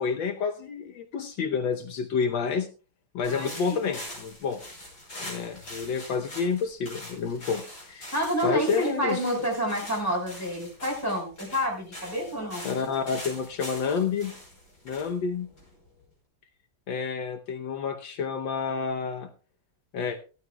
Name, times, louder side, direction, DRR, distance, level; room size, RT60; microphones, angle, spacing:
voice 1, 0.0-2.7 3.1-4.6 5.2-8.1 8.4-9.5 12.6-14.3 14.8-15.5 16.9-19.3 19.9-20.2, left 6 dB, 75° left, 5 dB, 1.6 m, -29 dB
sound 1, 3.2-16.0, left 1 dB, 55° left, 6.2 m, -43 dB
voice 2, 3.2-3.8 8.1-12.7, equal, 10° left, 0 dB, 5.0 m, -29 dB
16.5 x 12.5 x 2.3 m, 0.35 s
omnidirectional pair, 2.1 m